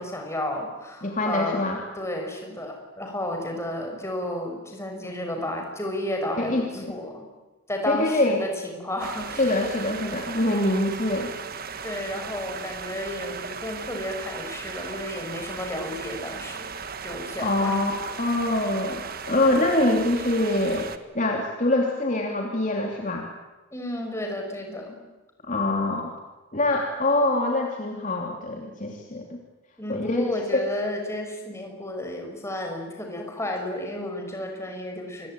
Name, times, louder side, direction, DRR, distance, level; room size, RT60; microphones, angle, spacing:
voice 1, 0.0-7.3 7.7-9.4 11.8-16.7 17.0-17.8 23.7-25.0 29.8-35.3, left 1 dB, 15° left, 2 dB, 5.9 m, -32 dB
voice 2, 1.0-1.8 6.4-6.9 7.9-8.4 9.4-11.3 17.4-17.9 18.2-23.3 25.4-26.1 26.5-29.4 29.9-30.3 30.5-30.6, left 1 dB, 35° left, 1 dB, 3.1 m, -24 dB
sound 1, 9.0-21.0, right 5 dB, 45° right, 1.5 m, -37 dB
28.0 x 22.5 x 9.2 m, 1.1 s
head